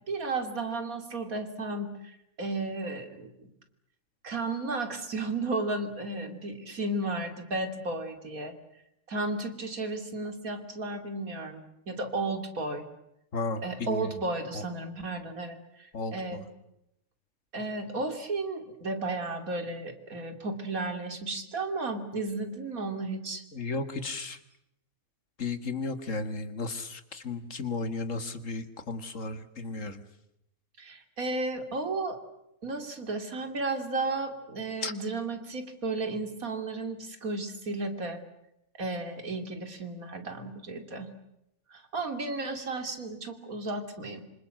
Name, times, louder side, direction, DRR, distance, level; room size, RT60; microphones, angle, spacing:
voice 1, 0.1-3.5 4.2-8.5 9.1-12.9 13.6-16.5 17.5-23.4 30.8-32.2 32.6-38.2 38.8-41.1 41.7-44.2, right 2 dB, 85° right, 7 dB, 3.3 m, -34 dB
voice 2, 13.3-14.1 14.5-14.6 15.9-16.4 23.5-24.4 25.4-30.0 34.8-34.9, left 3 dB, 65° left, 10 dB, 2.3 m, -34 dB
27.0 x 26.0 x 7.8 m, 0.82 s
omnidirectional pair, 1.4 m